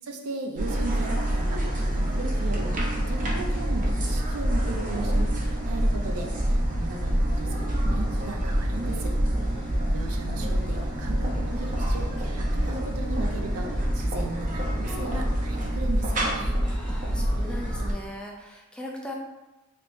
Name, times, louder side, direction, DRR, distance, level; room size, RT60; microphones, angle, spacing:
voice 1, 0.0-9.1 9.9-16.5, right 3 dB, 85° right, 3 dB, 0.5 m, -37 dB
sound 1, 0.6-17.9, equal, 35° right, 0.6 m, -26 dB
voice 2, 9.4-10.0 16.6-19.1, left 1 dB, 5° left, 0 dB, 0.3 m, -41 dB
3.4 x 3.0 x 2.6 m, 1.0 s
head